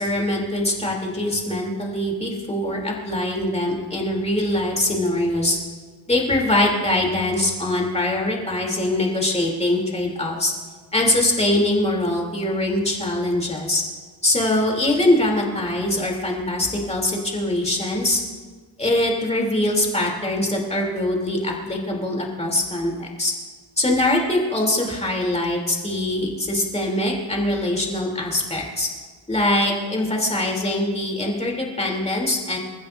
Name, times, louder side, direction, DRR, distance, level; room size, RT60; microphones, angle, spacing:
voice 1, 0.0-5.6 6.1-10.5 10.9-13.8 14.2-18.2 18.8-23.3 23.8-28.9 29.3-32.6, left 1 dB, 15° left, -1 dB, 3.1 m, -23 dB
28.5 x 14.5 x 2.6 m, 1.5 s
wide cardioid pair, 150°, 45 cm